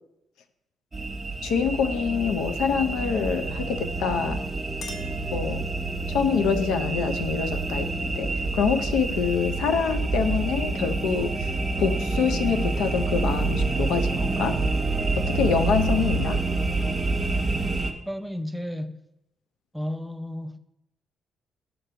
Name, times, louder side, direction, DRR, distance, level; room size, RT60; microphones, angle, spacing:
sound 1, 0.9-17.9, right 3 dB, 25° right, 0.9 m, -27 dB
voice 1, 1.4-4.4 5.3-5.6 6.1-11.5 11.8-14.6 15.2-16.4, left 6 dB, 85° left, 0.5 m, -26 dB
Chink clink, 4.7-6.1, left 2 dB, 55° left, 1.0 m, -45 dB
voice 2, 18.1-19.0 19.7-20.6, left 1 dB, ahead, 0.4 m, -32 dB
6.6 x 3.9 x 5.6 m
cardioid pair, 90°, 0 cm